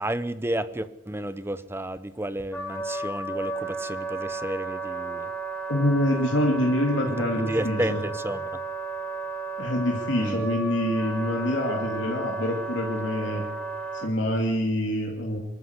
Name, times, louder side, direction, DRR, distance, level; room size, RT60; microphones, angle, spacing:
voice 1, 0.0-5.3 7.1-8.5 10.2-10.5, right 1 dB, 10° right, 0.7 m, -31 dB
Wind instrument woodwind instrument, 2.5-14.1, right 3 dB, 10° left, 4.3 m, -33 dB
voice 2, 5.7-8.0 9.6-13.4 14.0-15.4, left 1 dB, 70° left, 2.8 m, -26 dB
24.5 x 13.5 x 8.2 m
head